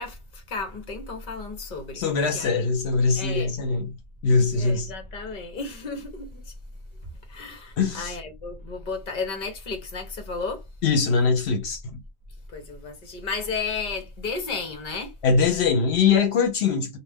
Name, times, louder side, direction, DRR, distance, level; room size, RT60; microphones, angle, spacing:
voice 1, 0.0-2.0 2.3-2.7 3.2-3.6 4.5-6.5 7.3-10.6 12.5-15.1, left 4 dB, 50° left, 1.0 m, -33 dB
voice 2, 1.9-3.9 4.2-4.9 7.8-8.2 10.8-12.0 15.2-17.0, left 5 dB, 80° left, 0.9 m, -22 dB
2.4 x 2.1 x 3.4 m
omnidirectional pair, 1.1 m